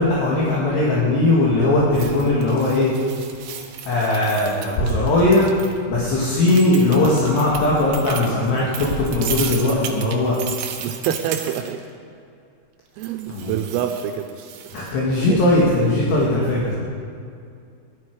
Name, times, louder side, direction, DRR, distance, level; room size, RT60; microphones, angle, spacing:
voice 1, 0.0-2.9 3.8-5.5 5.9-10.4 13.3-13.6 14.7-16.7, left 2 dB, 65° left, -5 dB, 3.7 m, -19 dB
sound 1, 1.9-5.8 6.5-11.8 13.0-14.9, right 8 dB, 75° right, 2.4 m, -34 dB
voice 2, 10.8-11.8 13.0-14.3 15.2-15.4, right 10 dB, 90° right, 4 dB, 3.4 m, -26 dB
18.5 x 13.0 x 4.7 m, 2.4 s
omnidirectional pair, 5.9 m